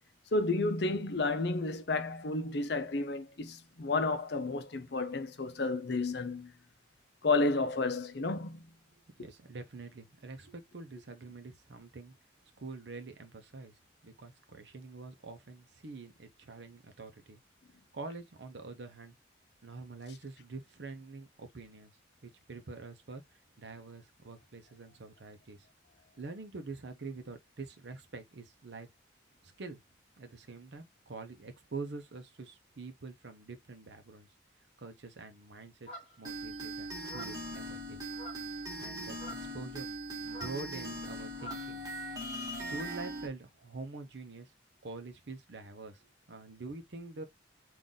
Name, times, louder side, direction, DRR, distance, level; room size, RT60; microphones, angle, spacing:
voice 1, 0.3-6.5 7.2-8.6, left 3 dB, 55° left, 0.6 m, -31 dB
voice 2, 9.2-12.1 12.6-13.8 14.0-17.4 17.9-19.1 19.6-21.9 22.2-23.2 23.6-25.7 26.2-28.9 29.4-29.8 30.2-34.3 34.8-35.9 36.2-38.0 38.8-39.9 40.2-41.8 42.6-44.5 44.8-47.2, right 3 dB, 60° right, 0.7 m, -45 dB
sound 1, 35.9-36.3 37.0-37.5 38.1-38.5 39.1-39.5 40.3-41.7, right 1 dB, 35° left, 1.8 m, -47 dB
sound 2, 36.2-43.3, right 1 dB, 20° right, 1.2 m, -40 dB
3.9 x 2.5 x 3.6 m
head